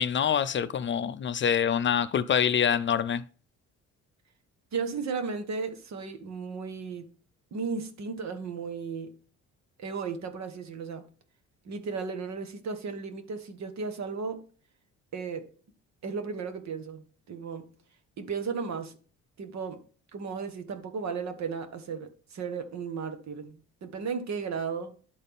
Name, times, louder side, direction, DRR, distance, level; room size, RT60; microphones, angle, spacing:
voice 1, 0.0-3.2, left 8 dB, 40° left, 0.4 m, -25 dB
voice 2, 4.7-7.1 7.5-9.1 9.8-11.0 11.6-14.4 15.1-15.5 16.0-17.7 18.2-18.9 19.4-19.8 20.1-24.9, right 5 dB, 65° right, 1.4 m, -35 dB
11.5 x 4.1 x 3.5 m
cardioid pair, 90°, 30 cm